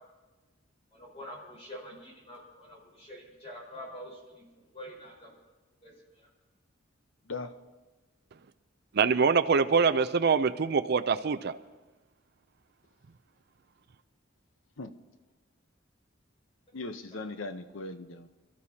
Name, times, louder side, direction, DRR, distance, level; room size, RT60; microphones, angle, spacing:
voice 1, 0.9-4.5 4.7-5.3 5.8-6.3 17.1-17.2, equal, 35° left, -3 dB, 4.7 m, -46 dB
voice 2, 8.9-11.6, right 5 dB, 55° right, 9 dB, 0.5 m, -24 dB
voice 3, 16.7-18.3, left 3 dB, 85° left, 9 dB, 0.8 m, -38 dB
27.5 x 13.0 x 2.8 m, 1.2 s
head